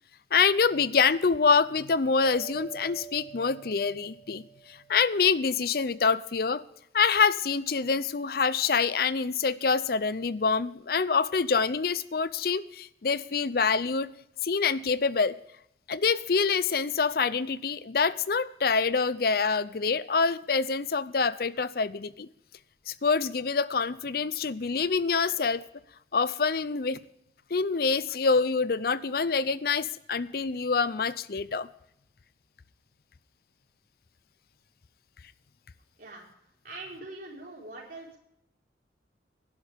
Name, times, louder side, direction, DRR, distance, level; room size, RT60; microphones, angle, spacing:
voice 1, 0.3-4.4 4.7-6.6 6.9-14.1 14.4-15.4 15.9-22.3 22.9-25.7 26.1-27.0 27.5-31.7, left 5 dB, 55° left, 17 dB, 0.6 m, -26 dB
sound 1, 2.2-5.2, right 9 dB, 85° right, 1.6 m, -46 dB
voice 2, 36.6-38.2, right 2 dB, 50° right, -2 dB, 4.5 m, -43 dB
18.5 x 11.0 x 3.5 m, 0.76 s
head